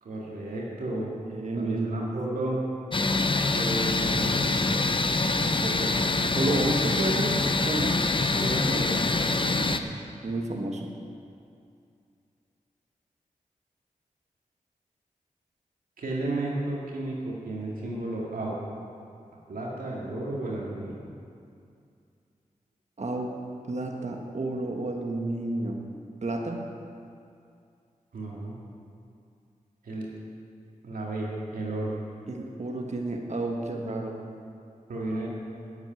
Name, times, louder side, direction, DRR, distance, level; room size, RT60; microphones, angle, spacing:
voice 1, 0.0-1.1 1.6-2.6 3.5-5.2 8.4-9.2 9.7-9.8 16.0-18.6 19.5-21.0 28.1-28.6 29.8-30.1 30.8-32.0 34.9-35.3, right 2 dB, 85° right, -4 dB, 2.1 m, -33 dB
voice 2, 1.2-2.1 5.4-8.0 9.3-9.8 10.2-10.9 23.0-23.4 23.7-25.9 26.2-26.6 32.3-34.2, right 2 dB, 55° right, 2 dB, 1.4 m, -31 dB
sound 1, 2.9-9.8, left 3 dB, 35° left, 0.7 m, -25 dB
9.0 x 8.1 x 9.2 m, 2.4 s
cardioid pair, 45°, 14 cm